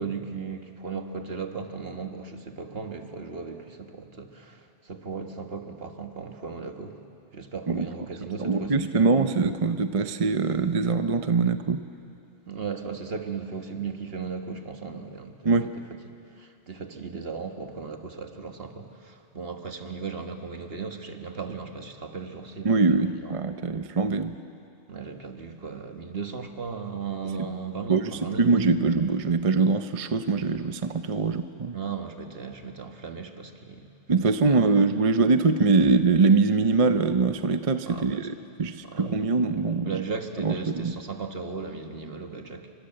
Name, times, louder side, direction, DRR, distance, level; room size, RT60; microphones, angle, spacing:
voice 1, 0.0-7.0 7.3-9.1 12.5-15.7 16.4-22.8 23.2-23.3 24.9-28.6 31.7-33.9 34.2-34.8 37.9-38.3 38.8-39.3 39.8-42.7, right 5 dB, 55° right, 5 dB, 1.8 m, -36 dB
voice 2, 8.4-11.8 15.4-15.7 22.6-24.4 27.4-27.5 27.9-31.8 34.1-38.3 38.6-39.9 40.4-40.9, right 4 dB, 35° right, 9 dB, 0.7 m, -23 dB
29.0 x 25.0 x 7.8 m, 2.6 s
omnidirectional pair, 1.2 m